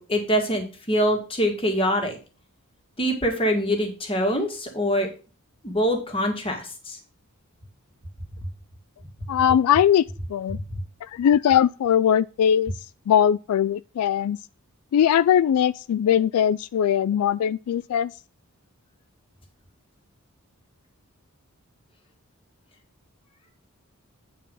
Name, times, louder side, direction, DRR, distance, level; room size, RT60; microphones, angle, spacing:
voice 1, 0.0-2.2 3.0-5.1 5.6-7.0 10.5-10.6, equal, 25° left, 2.1 m, -24 dB
voice 2, 9.3-10.0 10.3-10.6 11.1-12.7 13.1-14.4 14.9-18.1, left 9 dB, 85° left, 0.3 m, -20 dB
9.1 x 4.9 x 5.4 m
head